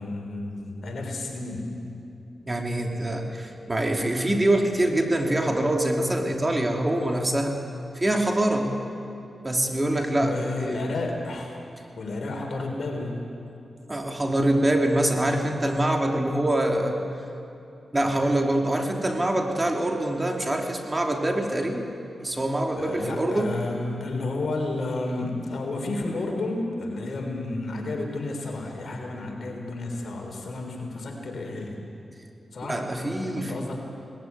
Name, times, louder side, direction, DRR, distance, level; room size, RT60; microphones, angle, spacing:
voice 1, 0.0-1.7 10.1-11.6 12.0-13.2 22.7-31.8 32.5-32.8 33.2-33.8, left 2 dB, 70° left, 2 dB, 3.6 m, -31 dB
voice 2, 2.4-7.6 7.9-8.8 9.4-10.9 13.9-17.0 17.9-21.9 22.2-23.6 32.6-33.5, right 1 dB, 25° right, 3 dB, 3.0 m, -24 dB
19.0 x 14.5 x 9.4 m, 2.8 s
cardioid pair, 45°, 0 cm